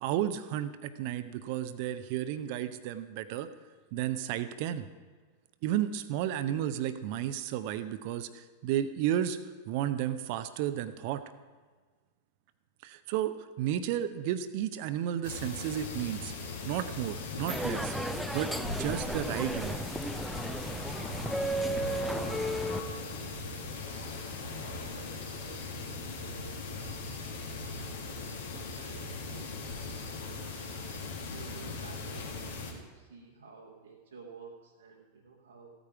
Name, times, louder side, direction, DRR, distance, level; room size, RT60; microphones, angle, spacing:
voice 1, 0.0-3.5 3.9-4.9 5.6-9.4 9.7-11.2 12.8-16.3 16.7-18.0 18.3-19.9, right 11 dB, 45° right, 12 dB, 0.6 m, -32 dB
sound 1, 15.2-32.7, left 3 dB, 60° left, 1.8 m, -39 dB
sound 2, 17.5-22.8, right 1 dB, 5° right, 0.5 m, -34 dB
voice 2, 21.6-23.7 24.6-27.3 28.5-30.6 31.3-35.7, right 4 dB, 70° right, -1 dB, 1.2 m, -52 dB
14.5 x 9.0 x 4.8 m, 1.4 s
figure-of-eight pair, 90°, 0 cm